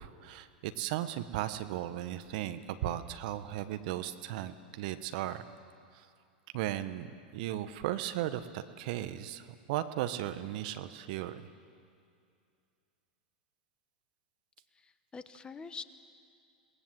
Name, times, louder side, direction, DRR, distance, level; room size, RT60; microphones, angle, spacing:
voice 1, 0.0-5.4 5.9-6.1 6.5-11.5, right 13 dB, 55° right, 11 dB, 1.1 m, -36 dB
voice 2, 14.7-15.8, left 5 dB, 20° left, 12 dB, 1.1 m, -45 dB
27.0 x 19.5 x 7.7 m, 2.4 s
hypercardioid pair, 95°, 5 cm